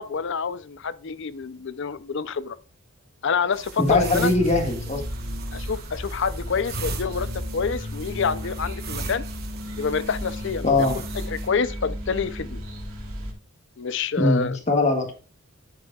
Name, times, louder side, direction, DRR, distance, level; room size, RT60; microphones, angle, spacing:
voice 1, 0.0-2.6 3.2-4.3 5.5-9.2 9.8-12.6 13.8-14.6, left 5 dB, 55° left, 0.5 m, -27 dB
sound 1, 3.5-11.5, right 4 dB, 45° right, 1.2 m, -39 dB
voice 2, 3.8-5.0 10.6-11.0 14.2-15.1, left 2 dB, 30° left, 1.7 m, -21 dB
sound 2, 3.9-13.3, equal, 75° right, 2.4 m, -34 dB
9.8 x 8.1 x 2.3 m
head